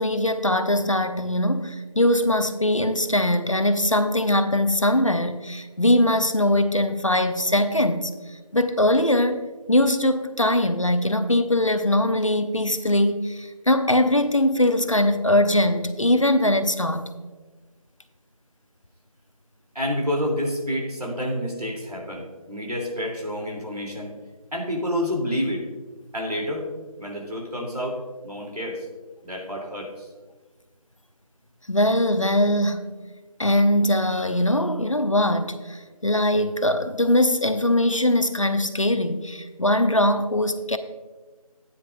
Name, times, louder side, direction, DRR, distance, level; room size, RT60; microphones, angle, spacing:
voice 1, 0.0-8.1 8.5-9.4 9.7-17.1 31.7-32.9 33.4-40.8, left 1 dB, 55° left, 9 dB, 0.7 m, -21 dB
voice 2, 19.7-24.1 24.5-25.7 26.1-26.7 27.0-28.0 28.2-28.9 29.2-30.1, equal, 90° right, -1 dB, 3.1 m, -28 dB
13.0 x 9.6 x 2.6 m, 1.3 s
figure-of-eight pair, 175°, 19 cm